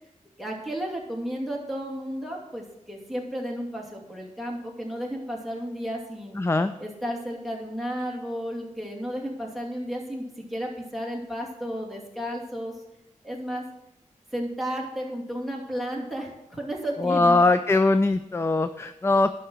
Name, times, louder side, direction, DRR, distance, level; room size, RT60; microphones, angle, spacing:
voice 1, 0.4-6.4 6.8-12.7 13.2-13.6 14.3-17.4, equal, ahead, -2 dB, 2.7 m, -33 dB
voice 2, 6.4-6.7 17.0-19.3, left 3 dB, 20° left, 10 dB, 0.4 m, -21 dB
11.5 x 5.6 x 6.2 m, 0.88 s
wide cardioid pair, 80°, 13 cm